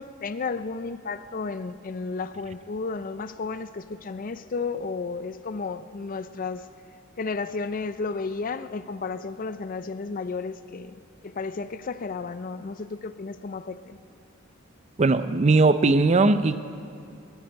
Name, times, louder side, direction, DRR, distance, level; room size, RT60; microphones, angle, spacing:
voice 1, 0.0-6.7 7.2-14.0, left 4 dB, 40° left, 13 dB, 0.5 m, -33 dB
voice 2, 15.0-16.6, right 3 dB, 35° right, 12 dB, 0.5 m, -19 dB
20.0 x 13.0 x 5.3 m, 2.5 s
head